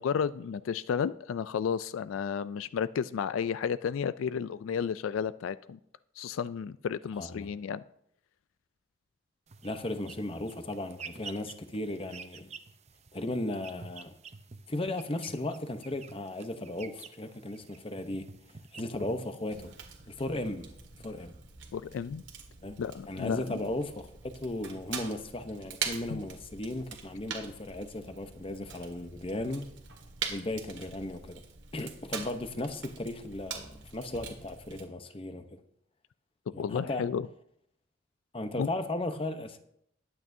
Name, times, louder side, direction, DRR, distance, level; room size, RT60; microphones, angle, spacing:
voice 1, 0.0-5.8 6.2-7.8 21.7-22.2 22.8-23.6 26.1-26.2 36.6-37.3 38.6-38.7, left 7 dB, 85° left, 0.3 m, -32 dB
voice 2, 7.2-7.5 9.6-12.5 13.1-14.1 14.7-18.3 18.7-19.7 20.1-20.7 21.0-21.3 22.6-22.8 23.1-29.7 30.3-31.4 31.7-35.6 36.5-37.1 38.3-39.6, left 1 dB, 30° left, 0.8 m, -36 dB
sound 1, 9.5-19.9, right 5 dB, 35° right, 0.7 m, -50 dB
Fire, 19.5-34.8, right 6 dB, 65° right, 1.7 m, -43 dB
21.0 x 8.5 x 2.7 m
head